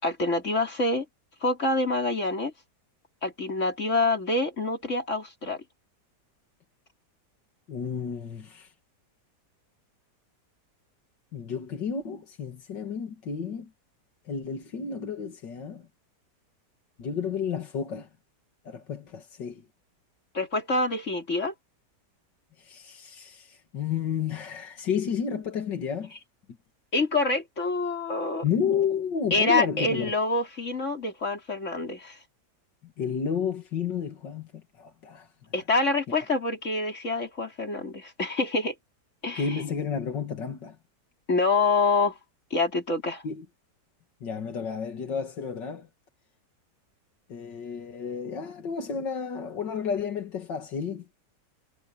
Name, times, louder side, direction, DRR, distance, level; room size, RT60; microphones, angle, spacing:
voice 1, 0.0-1.1 1.4-2.5 3.2-5.6 20.3-21.5 26.9-28.4 29.3-32.2 35.5-38.7 39.2-39.6 41.3-42.2 42.5-43.2, left 3 dB, 40° left, 4.3 m, -26 dB
voice 2, 7.7-8.7 11.3-13.7 14.3-15.9 17.0-18.1 18.6-19.6 22.6-26.1 28.4-30.1 33.0-35.3 39.4-40.8 43.2-43.5 44.2-45.9 47.3-51.1, left 6 dB, 90° left, 2.6 m, -31 dB
omnidirectional pair, 1.9 m